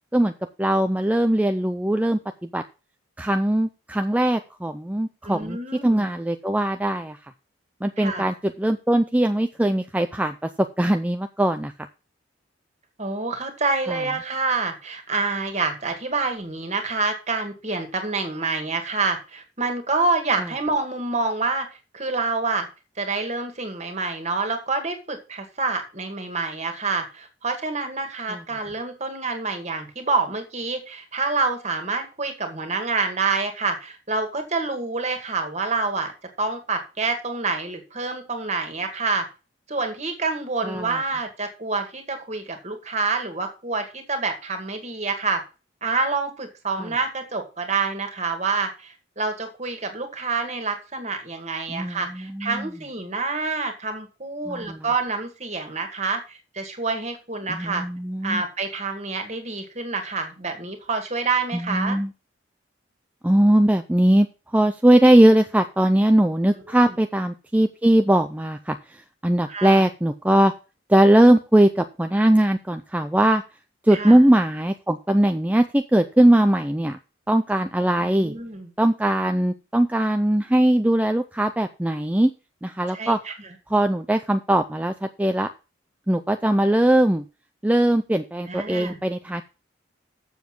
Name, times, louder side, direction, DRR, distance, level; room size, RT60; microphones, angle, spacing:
voice 1, 0.6-2.6 3.2-5.6 5.8-7.2 7.8-11.7 13.9-14.0 20.4-20.5 28.3-28.4 40.6-41.0 46.8-46.9 51.7-52.7 54.5-54.8 57.5-58.4 61.5-62.1 63.2-64.3 64.5-70.5 70.9-73.4 73.8-77.0 77.3-78.3 78.8-82.3 82.6-83.2 83.7-85.5 86.1-87.2 87.6-89.4, right 1 dB, 10° right, 7 dB, 0.4 m, -20 dB
voice 2, 5.2-6.1 8.0-8.3 13.0-21.7 21.9-22.7 23.0-36.1 36.4-39.2 39.7-45.4 45.8-57.8 58.2-62.0 66.7-66.9 69.5-69.8 73.9-74.2 78.0-78.7 82.9-83.3 88.5-89.0, right 3 dB, 35° right, 6 dB, 2.0 m, -27 dB
7.2 x 7.1 x 6.0 m, 0.31 s
head